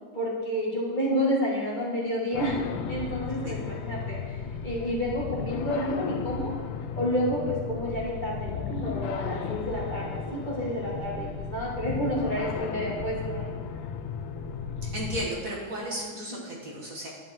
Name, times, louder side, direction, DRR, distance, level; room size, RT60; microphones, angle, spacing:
voice 1, 0.1-2.6 2.9-6.5 7.0-13.5 16.3-16.4, equal, 25° left, -5 dB, 2.0 m, -30 dB
sound 1, 2.3-15.3, left 6 dB, 80° left, 1.5 m, -35 dB
voice 2, 14.8-17.1, right 1 dB, 45° right, -3 dB, 1.8 m, -34 dB
11.0 x 9.1 x 4.5 m, 1.5 s
omnidirectional pair, 2.1 m